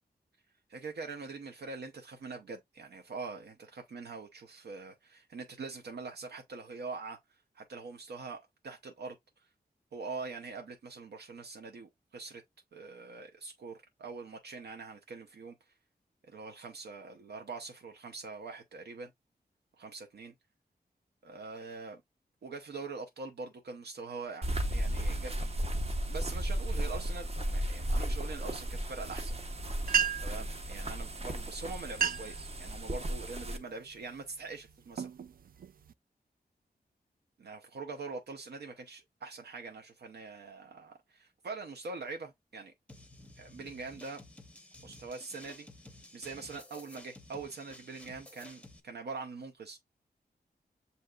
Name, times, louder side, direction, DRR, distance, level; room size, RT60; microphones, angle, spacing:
voice 1, 0.7-7.2 7.5-9.2 9.9-12.4 12.7-15.6 16.3-19.1 19.8-20.3 21.2-22.0 22.4-25.5 26.1-29.3 30.2-35.1 37.4-42.7 43.4-44.2 44.8-45.7 46.1-49.8, right 4 dB, 85° right, 0.8 m, -43 dB
sound 1, 24.4-33.6, right 1 dB, 40° right, 0.8 m, -34 dB
sound 2, 29.8-30.5 31.3-31.5 31.8-32.4 32.9-33.3 33.9-34.2 34.7-35.9, right 7 dB, 60° right, 0.4 m, -32 dB
sound 3, 42.9-48.8, left 1 dB, 5° left, 0.7 m, -53 dB
7.7 x 2.8 x 2.3 m
wide cardioid pair, 155°, 17 cm